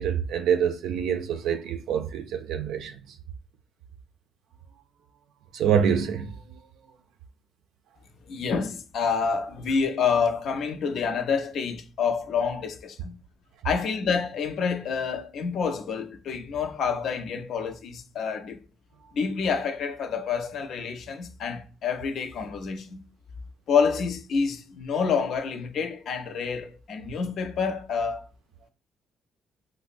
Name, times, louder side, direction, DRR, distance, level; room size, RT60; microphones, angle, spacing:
voice 1, 0.0-3.0 5.5-6.3, right 8 dB, 85° right, 0.3 m, -26 dB
voice 2, 8.3-13.2 13.6-18.6 19.1-23.0 23.7-28.3, left 6 dB, 70° left, 0.5 m, -28 dB
5.0 x 2.0 x 2.4 m
cardioid pair, 90°, 0 cm